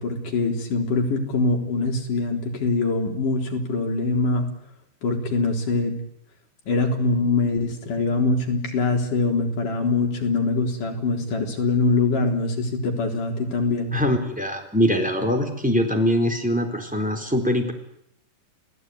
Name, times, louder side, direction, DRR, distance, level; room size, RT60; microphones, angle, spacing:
voice 1, 0.0-4.5 5.0-6.0 6.7-14.0, left 3 dB, 70° left, 2 dB, 5.4 m, -23 dB
voice 2, 13.9-17.7, equal, ahead, 3 dB, 3.9 m, -22 dB
29.0 x 18.0 x 9.7 m, 0.74 s
omnidirectional pair, 3.8 m